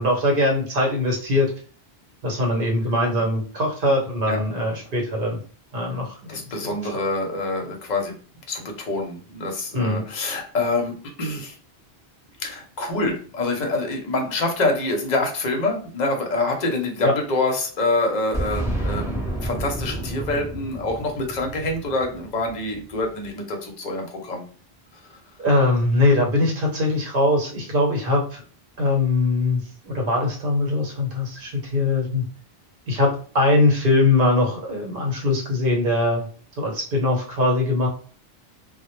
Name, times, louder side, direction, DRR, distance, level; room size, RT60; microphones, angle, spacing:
voice 1, 0.0-1.5 2.2-5.4 5.7-7.0 9.7-10.0 17.0-17.1 25.4-28.4 28.8-32.2 32.9-36.3 36.6-37.9, left 2 dB, 60° right, -1 dB, 1.0 m, -22 dB
voice 2, 6.3-8.2 8.5-11.6 12.4-24.4 25.1-25.2, left 2 dB, 50° left, 3 dB, 0.7 m, -26 dB
Boom, 18.3-23.0, right 1 dB, 5° right, 0.6 m, -30 dB
2.0 x 2.0 x 2.9 m, 0.42 s
omnidirectional pair, 1.1 m